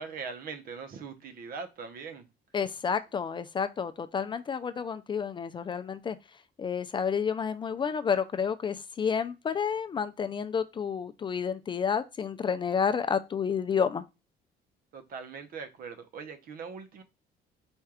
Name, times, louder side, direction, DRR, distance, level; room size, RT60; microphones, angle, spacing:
voice 1, 0.0-2.3 14.9-17.0, right 5 dB, 60° right, 0.8 m, -41 dB
voice 2, 2.5-6.2 6.6-14.0, left 6 dB, 30° left, 0.4 m, -30 dB
4.4 x 2.3 x 4.8 m
cardioid pair, 110°, 17 cm